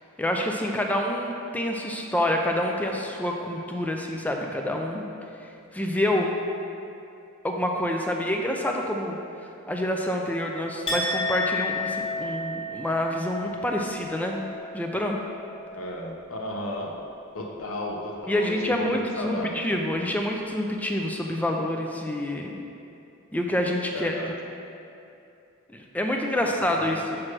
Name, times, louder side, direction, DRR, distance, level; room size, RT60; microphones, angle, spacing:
voice 1, 0.2-5.0 5.7-6.3 7.4-9.2 9.7-14.5 14.7-15.2 18.3-22.6 23.3-24.2 25.7-27.2, left 1 dB, 5° left, 1 dB, 0.4 m, -27 dB
Chink clink, 10.9-16.8 17.1-17.5, left 2 dB, 25° left, 1.3 m, -33 dB
voice 2, 15.7-17.0 17.3-19.6 23.9-24.4 26.3-27.0, left 1 dB, 75° left, 0 dB, 0.7 m, -34 dB
6.0 x 5.9 x 3.2 m, 2.7 s
head